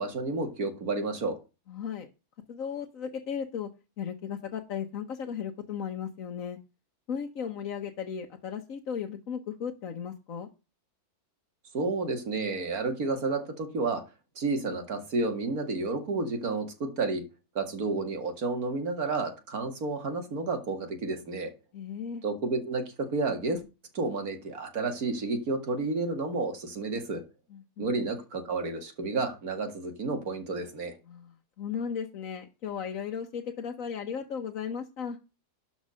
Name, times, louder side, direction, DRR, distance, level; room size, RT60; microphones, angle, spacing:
voice 1, 0.0-1.4 11.7-14.0 14.4-17.2 17.5-21.5 22.2-23.6 23.9-27.2 27.8-31.0, right 3 dB, 70° right, 6 dB, 2.5 m, -31 dB
voice 2, 1.7-2.1 2.5-3.7 4.0-6.6 7.1-10.5 21.7-22.2 27.5-27.9 31.1-35.2, left 7 dB, 60° left, 3 dB, 1.4 m, -36 dB
12.0 x 4.7 x 6.3 m, 0.30 s
omnidirectional pair, 1.6 m